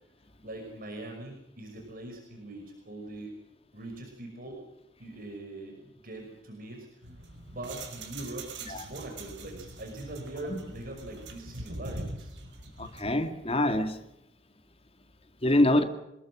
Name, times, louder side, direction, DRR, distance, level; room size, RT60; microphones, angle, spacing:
voice 1, 0.4-3.4 3.7-4.6 5.0-6.9 7.4-12.3, right 1 dB, 50° right, 5.9 m, -42 dB
sound 1, 7.0-13.2, right 2 dB, 80° right, 5.8 m, -43 dB
voice 2, 12.8-14.0 15.4-15.8, left 1 dB, 35° left, 2.4 m, -25 dB
28.0 x 20.5 x 6.4 m
head